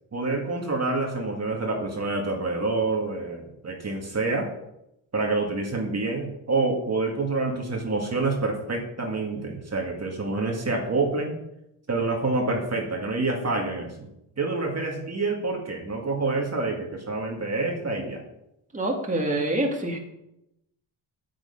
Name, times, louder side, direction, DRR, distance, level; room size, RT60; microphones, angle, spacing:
voice 1, 0.1-4.5 5.1-11.4 11.9-14.1 14.4-18.2, right 3 dB, 35° right, 0 dB, 2.2 m, -27 dB
voice 2, 18.7-20.0, right 1 dB, 15° right, 0 dB, 2.3 m, -26 dB
8.8 x 7.9 x 5.5 m, 0.83 s
cardioid pair, 80°, 46 cm